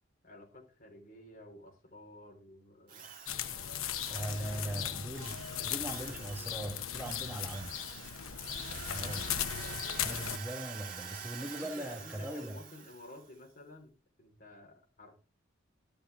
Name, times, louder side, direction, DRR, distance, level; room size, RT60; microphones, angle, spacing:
voice 1, 0.2-3.1 4.0-4.8 5.6-6.2 11.3-15.1, left 1 dB, 40° left, 4.2 m, -53 dB
Drill, 2.9-13.3, right 7 dB, 40° right, 2.0 m, -47 dB
sound 1, 3.3-10.4, left 9 dB, 80° left, 0.9 m, -38 dB
voice 2, 4.1-7.8 8.7-9.4 10.0-12.6, right 1 dB, 10° right, 1.3 m, -40 dB
12.5 x 11.5 x 3.5 m
head